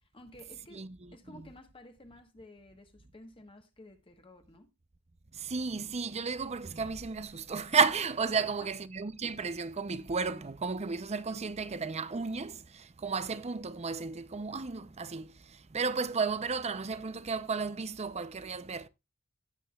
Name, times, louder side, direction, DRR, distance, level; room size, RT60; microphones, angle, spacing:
voice 1, 0.0-4.7 8.4-8.7, left 1 dB, 25° left, 1.3 m, -53 dB
voice 2, 5.3-18.9, right 5 dB, 30° right, 0.6 m, -33 dB
17.0 x 7.7 x 2.4 m
head